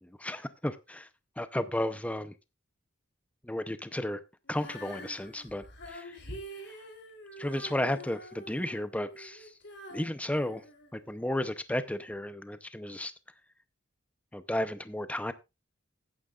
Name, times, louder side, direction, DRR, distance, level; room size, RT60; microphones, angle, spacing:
voice 1, 0.0-1.1 1.4-2.3 3.4-4.2 4.5-6.2 7.4-9.5 9.9-10.6 10.9-13.1 14.3-15.3, left 1 dB, 5° left, 0.6 m, -33 dB
Female singing, 4.4-11.5 12.1-12.2, equal, 60° left, 3.0 m, -47 dB
16.5 x 9.3 x 2.4 m
head